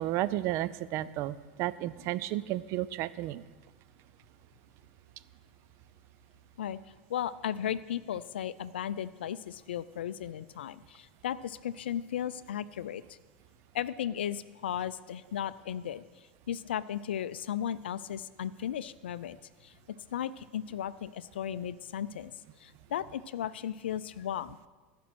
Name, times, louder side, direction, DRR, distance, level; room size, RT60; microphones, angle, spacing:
voice 1, 0.0-3.4, right 14 dB, 55° right, 16 dB, 0.5 m, -32 dB
voice 2, 7.1-13.2 13.7-19.4 19.6-22.3 22.6-24.6, left 10 dB, 80° left, 15 dB, 0.4 m, -36 dB
15.0 x 5.1 x 6.1 m, 1.3 s
hypercardioid pair, 85°, 6 cm